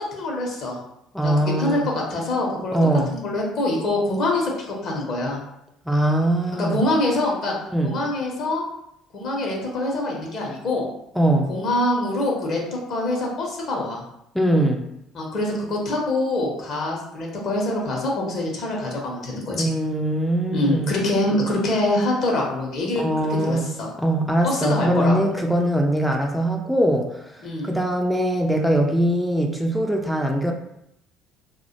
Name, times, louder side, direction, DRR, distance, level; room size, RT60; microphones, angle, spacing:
voice 1, 0.1-0.8 1.2-2.8 3.1-5.4 6.5-7.5 7.8-8.6 9.1-10.9 11.5-14.0 15.1-19.6 20.5-23.0 23.3-23.9 24.4-25.3 27.4-27.7, left 1 dB, 50° left, -1 dB, 0.6 m, -25 dB
voice 2, 1.1-1.9 2.7-3.1 5.9-6.8 7.7-8.0 11.1-11.5 14.3-14.8 19.5-21.0 23.0-27.2 27.6-30.5, right 1 dB, ahead, 1 dB, 0.4 m, -22 dB
2.1 x 2.0 x 2.8 m, 0.79 s
figure-of-eight pair, 55°, 0 cm